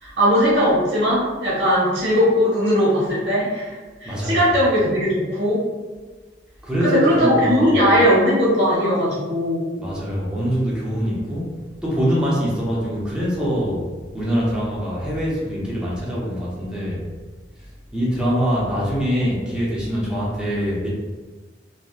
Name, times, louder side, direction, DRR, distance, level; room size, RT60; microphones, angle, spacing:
voice 1, 0.0-5.6 6.8-9.7, equal, 90° right, -8 dB, 1.2 m, -19 dB
voice 2, 4.0-4.4 6.6-7.8 9.8-11.5 11.8-17.0 17.9-20.9, equal, 5° right, -7 dB, 0.6 m, -23 dB
2.7 x 2.1 x 2.3 m, 1.3 s
head